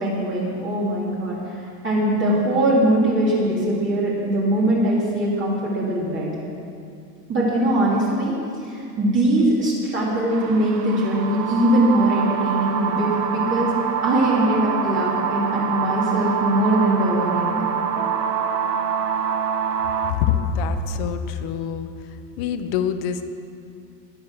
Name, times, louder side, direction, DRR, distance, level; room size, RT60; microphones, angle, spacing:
voice 1, 0.0-6.3 7.3-8.3 8.6-13.7 14.0-17.6, right 1 dB, 25° right, -6 dB, 2.9 m, -21 dB
sound 1, 10.3-20.1, right 7 dB, 80° right, 1.5 m, -25 dB
voice 2, 20.1-21.9 22.4-23.2, left 7 dB, 25° left, 9 dB, 0.3 m, -24 dB
20.0 x 7.6 x 6.2 m, 2.5 s
supercardioid pair, 150°, 48 cm